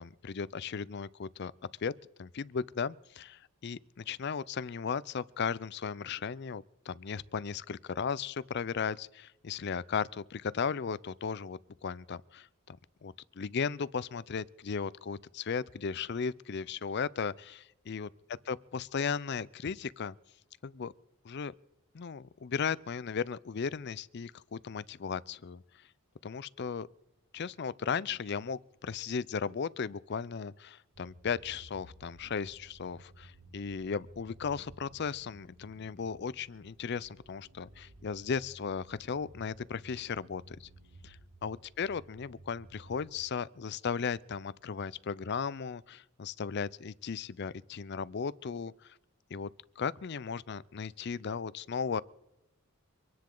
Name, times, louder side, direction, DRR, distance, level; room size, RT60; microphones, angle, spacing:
voice 1, 0.0-1.5 1.8-12.8 13.0-18.1 18.5-20.2 20.6-20.9 21.2-21.5 21.9-25.6 26.2-26.9 27.3-40.7 41.0-48.9 49.3-49.5 49.8-52.0, left 6 dB, 50° left, 0.4 m, -36 dB
sound 1, 30.9-43.3, right 1 dB, 75° right, 1.7 m, -56 dB
25.0 x 10.5 x 3.9 m
head